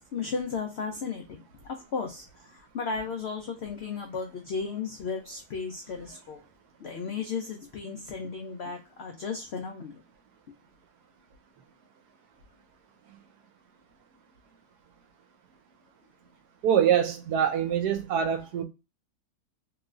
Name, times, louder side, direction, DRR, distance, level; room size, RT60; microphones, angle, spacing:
voice 1, 0.1-1.4 1.6-2.2 2.7-6.4 6.8-9.9, left 5 dB, 80° left, 0.5 m, -34 dB
voice 2, 16.6-18.6, right 9 dB, 85° right, 1.2 m, -25 dB
3.2 x 3.0 x 2.3 m
omnidirectional pair, 1.7 m